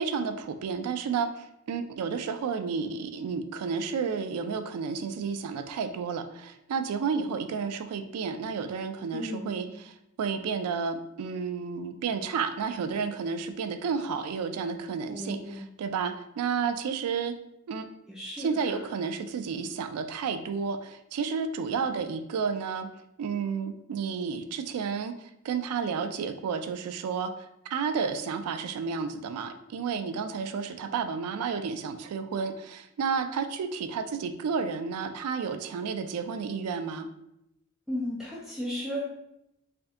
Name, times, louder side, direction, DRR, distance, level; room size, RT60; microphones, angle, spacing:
voice 1, 0.0-9.9 10.2-17.3 17.7-17.8 18.4-22.9 23.2-37.1, right 5 dB, 80° right, 9 dB, 0.3 m, -31 dB
voice 2, 9.1-9.7 15.1-15.6 18.1-18.8 37.9-39.0, equal, ahead, -5 dB, 0.5 m, -35 dB
3.4 x 2.6 x 3.6 m, 0.83 s
head